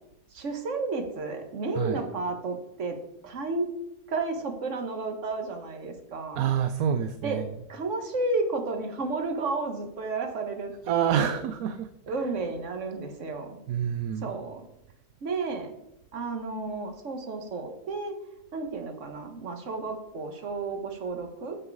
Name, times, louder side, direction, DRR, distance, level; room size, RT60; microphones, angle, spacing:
voice 1, 0.3-3.0 3.2-3.7 4.1-6.4 7.2-7.4 7.7-11.4 12.1-13.6 14.2-14.6 15.2-15.7 16.1-18.2 18.5-21.6, right 3 dB, 55° right, 5 dB, 1.5 m, -32 dB
voice 2, 6.4-7.4 10.9-11.9 13.7-14.3, right 9 dB, 75° right, 11 dB, 1.0 m, -27 dB
8.9 x 7.8 x 4.7 m, 0.83 s
omnidirectional pair, 1.6 m